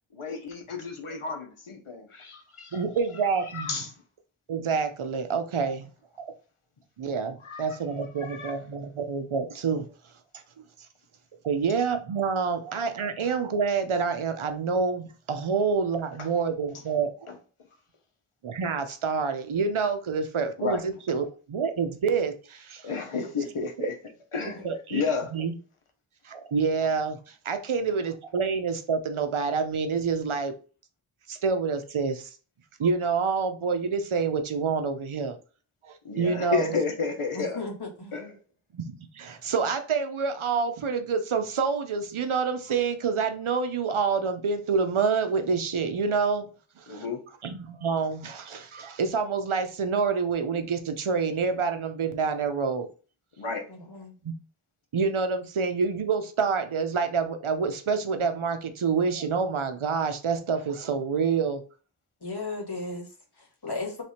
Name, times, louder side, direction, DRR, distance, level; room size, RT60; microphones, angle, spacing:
voice 1, 0.1-2.8 3.5-3.9 7.4-7.6 8.2-8.5 16.2-16.3 17.3-17.4 20.6-20.8 22.8-23.9 24.3-25.3 36.0-37.6 38.1-38.3 46.9-47.2 53.4-53.6, left 5 dB, 90° left, 1.1 m, -31 dB
voice 2, 2.7-3.7 4.5-5.9 6.2-6.3 7.0-9.9 10.6-10.7 11.4-17.3 18.4-22.9 24.6-25.0 25.3-25.5 26.2-30.5 31.3-32.3 32.8-35.4 35.8-36.7 38.7-46.5 46.8-47.0 47.4-52.9 54.2-54.3 54.9-61.6, right 5 dB, 75° right, 0.8 m, -27 dB
voice 3, 37.3-38.1 53.7-54.1 62.2-64.0, left 3 dB, 50° left, 1.8 m, -36 dB
3.3 x 3.3 x 4.2 m
wide cardioid pair, 50°, 49 cm